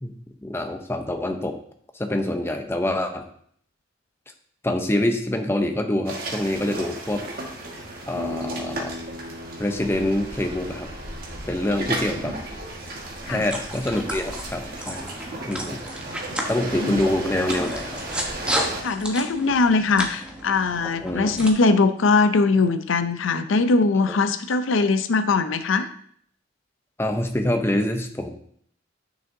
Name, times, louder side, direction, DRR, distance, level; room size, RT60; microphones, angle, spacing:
voice 1, 0.0-1.6 1.9-3.3 4.6-7.2 8.1-9.0 9.6-10.9 11.5-12.4 13.3-15.1 15.4-15.8 16.5-18.0 21.0-21.3 24.1-24.2 27.0-28.3, left 1 dB, 15° left, 5 dB, 0.7 m, -25 dB
sound 1, 6.0-18.8, right 1 dB, 50° right, 1.6 m, -34 dB
sound 2, 8.1-13.7, left 1 dB, 80° right, 1.2 m, -40 dB
sound 3, 13.2-21.5, equal, 5° right, 1.1 m, -33 dB
voice 2, 18.8-25.9, left 3 dB, 85° left, 11 dB, 0.5 m, -21 dB
10.0 x 6.2 x 2.7 m, 0.62 s
head